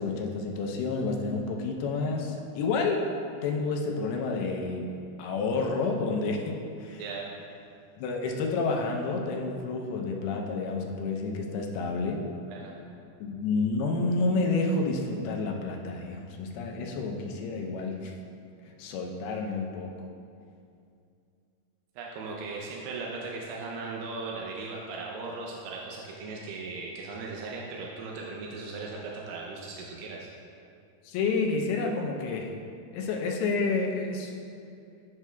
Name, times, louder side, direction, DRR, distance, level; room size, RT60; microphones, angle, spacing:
voice 1, 0.0-3.1 3.4-4.9 5.2-7.0 8.0-12.2 13.2-18.1 18.8-19.9 31.0-32.5 32.9-34.4, left 3 dB, 85° left, 1 dB, 2.6 m, -29 dB
voice 2, 22.0-30.3, right 3 dB, 90° right, -2 dB, 2.7 m, -38 dB
10.5 x 5.9 x 2.2 m, 2.5 s
omnidirectional pair, 4.5 m